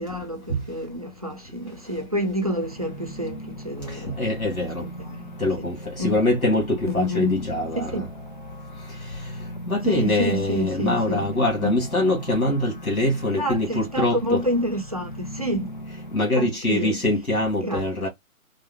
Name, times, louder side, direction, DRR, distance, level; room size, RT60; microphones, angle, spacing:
voice 1, 0.0-4.2 5.1-5.4 6.0-6.2 6.9-7.3 7.8-8.0 9.9-11.2 11.6-11.7 13.4-15.7 16.4-17.0 17.6-17.9, equal, 30° right, 0.5 m, -28 dB
sound 1, 2.6-16.2, equal, 35° left, 0.4 m, -38 dB
voice 2, 3.8-4.9 5.4-8.1 8.9-14.4 16.1-18.1, left 1 dB, 90° left, 1.9 m, -24 dB
3.6 x 2.0 x 3.4 m
figure-of-eight pair, 145°, 42 cm